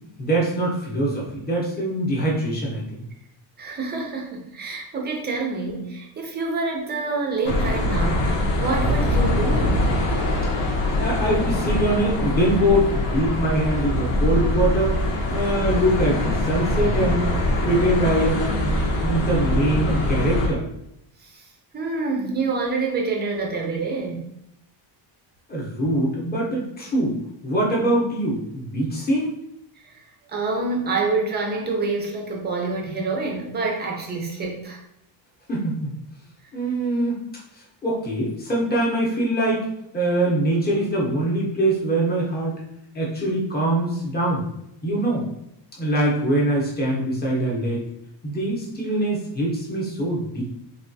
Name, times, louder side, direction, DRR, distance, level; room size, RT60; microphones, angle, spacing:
voice 1, 0.2-3.0 11.0-15.0 15.3-17.3 17.6-18.7 19.0-20.6 25.5-27.2 27.4-29.3 35.5-35.9 36.5-37.2 37.8-39.7 39.9-42.5 42.9-44.4 44.8-45.3 45.8-47.8 48.2-50.4, right 1 dB, 20° left, -4 dB, 0.7 m, -23 dB
voice 2, 3.6-9.9 21.2-21.4 21.7-24.3 29.8-30.0 30.3-34.8, right 3 dB, 25° right, 0 dB, 0.4 m, -27 dB
sound 1, 7.4-20.5, left 1 dB, 70° left, 0.8 m, -23 dB
3.3 x 2.3 x 2.6 m, 0.80 s
cardioid pair, 180°, 45 cm